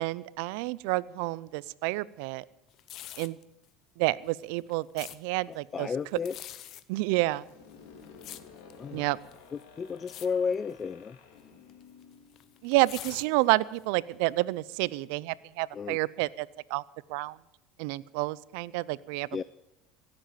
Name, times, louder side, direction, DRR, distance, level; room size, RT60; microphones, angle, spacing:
voice 1, 0.0-2.4 3.2-3.4 4.0-5.9 6.9-7.4 8.9-9.2 12.6-16.8 17.1-17.4 17.8-19.4, right 20 dB, 75° right, 21 dB, 0.4 m, -29 dB
sound 1, 2.7-3.4 4.3-5.2 6.1-6.8 7.6-8.8 9.3-9.6 10.0-10.3 10.5-10.8 11.7-13.8 14.2-14.3, left 12 dB, 55° left, 0.9 m, -44 dB
voice 2, 5.5-6.4 8.8-9.1 9.5-11.2 15.7-16.0 19.3-19.4, left 6 dB, 30° left, 17 dB, 0.4 m, -33 dB
sound 2, 7.3-13.0, left 6 dB, 75° left, 2.8 m, -53 dB
16.0 x 7.6 x 9.0 m, 0.91 s
supercardioid pair, 100°, 0 cm